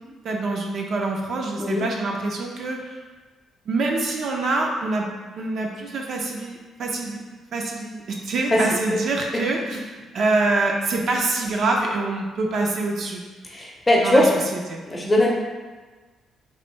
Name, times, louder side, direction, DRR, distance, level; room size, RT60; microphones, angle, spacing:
voice 1, 0.2-3.0 3.7-7.2 7.5-9.8 10.1-13.2 14.0-14.8, right 2 dB, 60° right, 0 dB, 0.5 m, -25 dB
voice 2, 13.4-14.3 14.9-15.3, left 1 dB, 20° left, -2 dB, 0.6 m, -19 dB
3.1 x 2.6 x 3.1 m, 1.3 s
cardioid pair, 105°, 0 cm